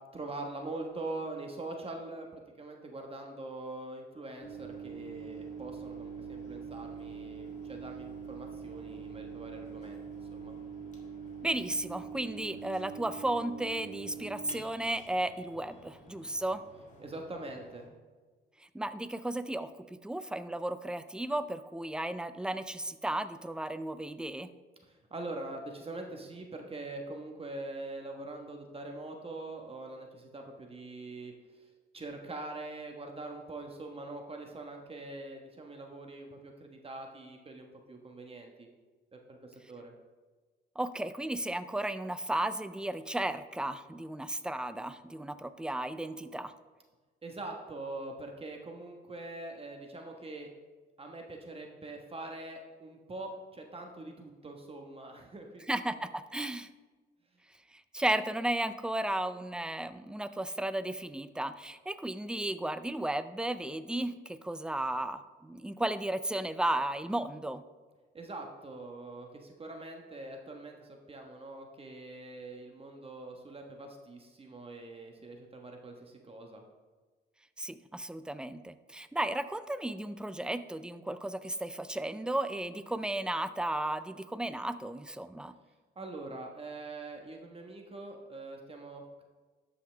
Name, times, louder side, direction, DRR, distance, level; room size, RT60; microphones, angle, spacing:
voice 1, 0.1-10.0 10.3-10.5 17.0-17.9 24.8-38.7 39.1-39.9 47.2-50.5 51.0-55.7 68.1-76.6 85.9-89.2, right 2 dB, 30° right, 2 dB, 1.3 m, -43 dB
Microwave oven, 4.4-17.9, right 6 dB, 35° left, 2.1 m, -45 dB
voice 2, 11.4-16.6 18.7-24.5 40.8-46.5 55.7-56.7 57.9-67.6 77.6-85.5, right 1 dB, 5° right, 12 dB, 0.4 m, -34 dB
13.0 x 5.6 x 3.4 m, 1.3 s
cardioid pair, 90°, 20 cm